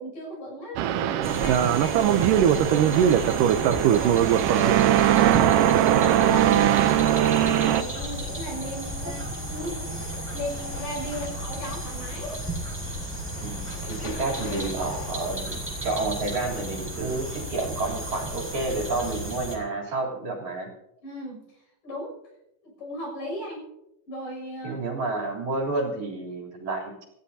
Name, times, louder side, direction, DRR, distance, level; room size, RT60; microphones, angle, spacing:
voice 1, 0.0-5.5 6.0-9.3 10.3-12.4 21.0-22.1 22.6-23.6 24.1-24.8, equal, 60° left, 0 dB, 8.5 m, -37 dB
sound 1, 0.8-7.8, right 11 dB, 75° right, 2.0 m, -20 dB
sound 2, 1.2-19.6, right 1 dB, 5° right, 5.5 m, -34 dB
sound 3, 3.6-19.4, left 5 dB, 75° left, 3.3 m, -43 dB
voice 2, 13.4-20.7 24.6-27.0, right 3 dB, 50° right, -2 dB, 4.8 m, -30 dB
28.5 x 14.5 x 2.8 m, 0.87 s
omnidirectional pair, 4.4 m